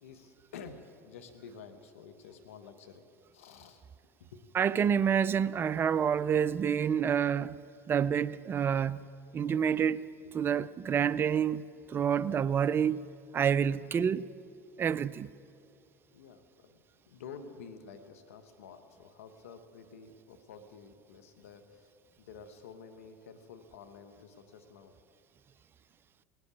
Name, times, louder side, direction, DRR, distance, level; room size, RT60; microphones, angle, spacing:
voice 1, 0.0-3.0 3.3-3.8 4.3-4.4 16.1-21.9 22.2-24.9, left 6 dB, 90° left, 1.0 m, -50 dB
voice 2, 4.5-7.6 7.9-9.0 9.3-10.1 10.3-11.6 11.9-13.0 13.3-14.3 14.8-15.3, right 8 dB, 30° right, 0.4 m, -28 dB
18.0 x 7.9 x 8.3 m
hypercardioid pair, 90°, 7 cm